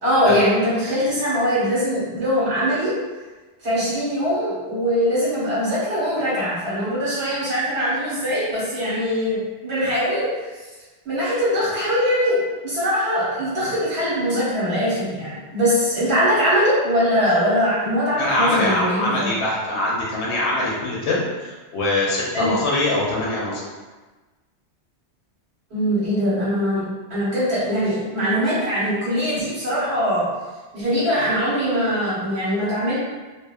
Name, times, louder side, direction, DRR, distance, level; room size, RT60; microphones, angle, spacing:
voice 1, 0.0-2.9 3.6-10.5 11.0-19.3 22.3-22.5 25.7-26.8 27.1-30.3 30.7-33.0, equal, 70° right, -9 dB, 1.4 m, -22 dB
voice 2, 18.2-23.6, left 2 dB, 80° left, -5 dB, 0.9 m, -23 dB
2.5 x 2.4 x 2.2 m, 1.2 s
omnidirectional pair, 1.1 m